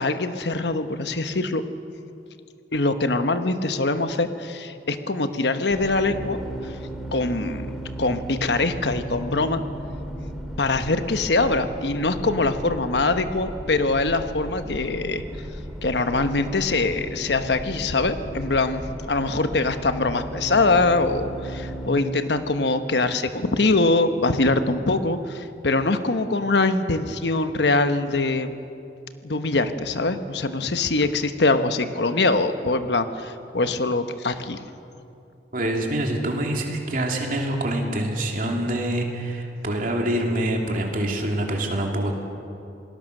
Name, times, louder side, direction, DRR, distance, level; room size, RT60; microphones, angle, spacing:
voice 1, 0.0-1.6 2.7-6.4 6.6-6.7 7.1-7.7 8.0-9.6 10.6-15.2 15.8-28.5 29.2-34.6, left 3 dB, 70° left, 9 dB, 1.1 m, -23 dB
sound 1, 5.7-21.9, right 1 dB, ahead, 2.1 m, -35 dB
voice 2, 35.5-42.1, right 1 dB, 50° right, 1 dB, 3.0 m, -25 dB
27.0 x 19.0 x 6.6 m, 2.7 s
head